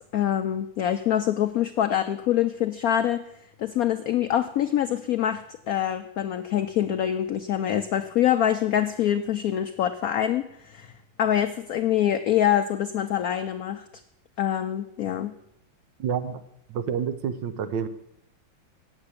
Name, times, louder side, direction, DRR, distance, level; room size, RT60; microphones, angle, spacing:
voice 1, 0.0-3.2 3.6-10.9 11.2-13.8 14.4-15.3, left 10 dB, 90° left, 9 dB, 0.7 m, -25 dB
voice 2, 16.0-16.4 16.7-17.9, right 7 dB, 70° right, 10 dB, 1.4 m, -28 dB
9.0 x 7.7 x 8.3 m, 0.75 s
omnidirectional pair, 2.2 m